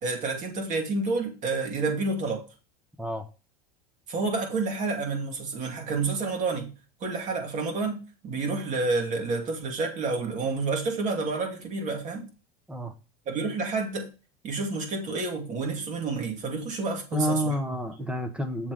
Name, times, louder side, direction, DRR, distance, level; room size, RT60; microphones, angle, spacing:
voice 1, 0.0-2.4 4.1-6.7 7.0-12.3 13.3-14.1 14.4-17.6, right 3 dB, 40° right, 2.4 m, -29 dB
voice 2, 17.1-18.7, equal, 5° right, 0.9 m, -29 dB
7.2 x 3.6 x 6.4 m
supercardioid pair, 120°, 19 cm